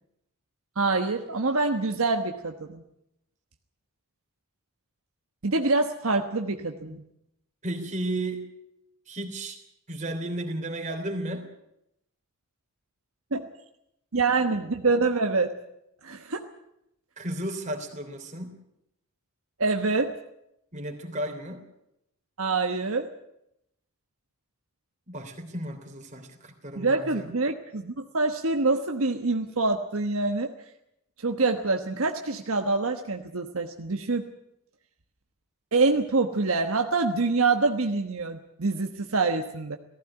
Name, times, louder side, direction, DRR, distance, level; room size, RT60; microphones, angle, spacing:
voice 1, 0.8-2.8 5.4-7.0 13.3-13.5 14.1-15.5 16.0-16.4 19.6-20.1 22.4-23.1 26.8-30.5 31.2-34.3 35.7-39.8, right 3 dB, 70° right, 5 dB, 1.2 m, -26 dB
voice 2, 7.6-8.5 9.1-9.6 9.9-11.5 17.2-18.6 20.7-21.7 25.1-27.3, right 1 dB, 35° right, 4 dB, 3.3 m, -34 dB
18.0 x 15.5 x 9.9 m, 0.81 s
head